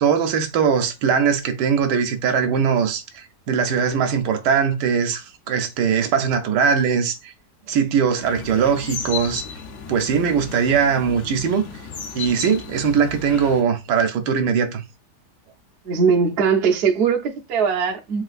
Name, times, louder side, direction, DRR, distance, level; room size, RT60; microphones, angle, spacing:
voice 1, 0.0-7.3 7.7-9.4 9.9-11.6 12.1-14.8, right 6 dB, 80° right, 1.2 m, -20 dB
sound 1, 8.2-13.6, left 6 dB, 60° left, 0.8 m, -35 dB
voice 2, 15.9-18.2, right 6 dB, 65° right, 0.6 m, -20 dB
3.3 x 3.1 x 2.4 m
omnidirectional pair, 1.8 m